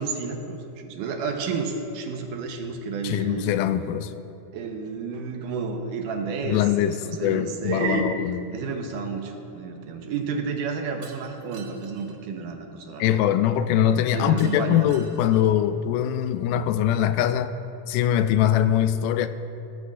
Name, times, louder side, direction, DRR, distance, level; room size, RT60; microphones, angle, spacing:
voice 1, 0.0-3.6 4.5-8.1 8.5-13.1 14.1-14.9, right 5 dB, 75° right, 4 dB, 2.4 m, -31 dB
voice 2, 3.0-4.1 6.4-8.4 13.0-17.6 17.9-19.3, left 10 dB, 85° left, 10 dB, 2.1 m, -22 dB
Shatter, 11.0-12.2 14.4-15.7, right 5 dB, 60° right, 1.4 m, -49 dB
17.5 x 14.5 x 2.5 m, 2.9 s
omnidirectional pair, 3.8 m